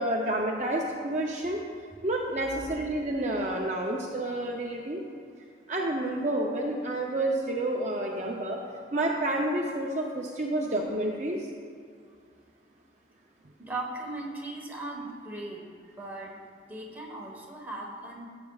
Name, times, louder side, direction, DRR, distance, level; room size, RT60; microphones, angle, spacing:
voice 1, 0.0-1.6 2.0-5.0 5.7-8.6 8.9-11.5, right 1 dB, 40° right, -1 dB, 0.6 m, -29 dB
voice 2, 13.6-15.6 16.0-16.4 16.7-18.3, right 2 dB, 10° right, -3 dB, 1.3 m, -38 dB
14.5 x 7.8 x 2.4 m, 2.2 s
head